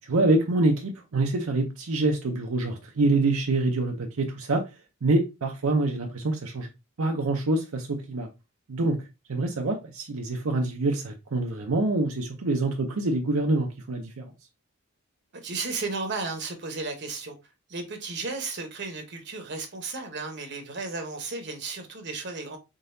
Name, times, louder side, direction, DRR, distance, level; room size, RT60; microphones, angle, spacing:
voice 1, 0.1-4.6 5.0-6.7 7.0-8.3 8.7-9.0 9.3-14.3, right 2 dB, 75° right, 0.6 m, -26 dB
voice 2, 15.3-17.4 17.7-22.6, right 3 dB, 50° right, 0.9 m, -34 dB
3.9 x 3.8 x 2.6 m
head